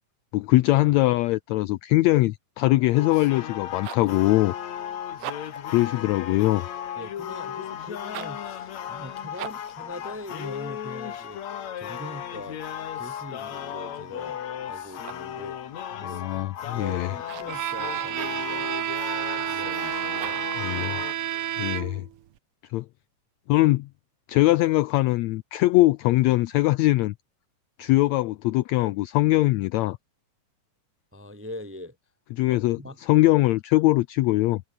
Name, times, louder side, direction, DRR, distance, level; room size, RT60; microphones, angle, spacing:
voice 1, 0.3-4.5 5.7-6.6 16.1-17.1 20.6-21.0 21.6-22.0 22.7-22.8 23.5-23.9 24.3-27.1 27.8-30.0 32.4-34.6, left 18 dB, 80° left, 1.6 m, -22 dB
sound 1, 2.9-21.1, left 9 dB, 60° left, 2.9 m, -36 dB
sound 2, 3.5-4.2 5.1-5.7 8.0-8.5 9.3-9.8 14.8-15.4 17.2-17.7 20.1-20.7, right 19 dB, 80° right, 2.0 m, -40 dB
voice 2, 7.0-12.6 12.9-14.4 14.7-15.6 16.0-18.8 19.4-20.5 31.1-31.9 32.5-33.4, left 1 dB, 5° right, 1.0 m, -42 dB
Bowed string instrument, 17.5-22.1, right 11 dB, 60° right, 1.6 m, -30 dB
omnidirectional pair, 3.7 m